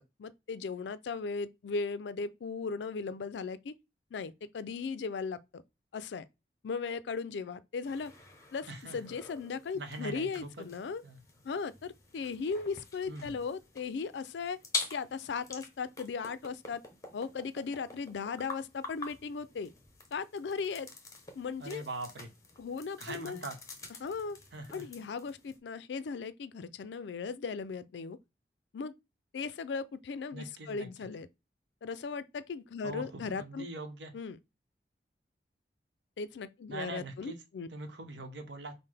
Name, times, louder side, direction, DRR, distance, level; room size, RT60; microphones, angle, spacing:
voice 1, 0.2-3.7 4.1-5.6 5.9-6.3 6.6-8.1 8.5-11.0 11.4-14.6 14.9-16.8 17.1-19.7 20.1-20.9 21.4-21.8 22.6-23.4 24.0-24.4 24.7-28.2 28.7-28.9 29.3-31.3 31.8-33.7 34.1-34.4 36.2-37.7, left 5 dB, 80° left, 0.4 m, -37 dB
sound 1, 7.8-25.6, left 4 dB, 20° left, 0.7 m, -46 dB
voice 2, 8.7-9.0 9.7-10.7 11.0-11.2 13.1-13.4 21.6-22.3 23.0-23.6 24.5-24.9 30.3-30.9 32.8-34.1 36.7-37.4 37.7-38.7, right 2 dB, 80° right, 0.8 m, -42 dB
5.5 x 2.1 x 3.3 m
head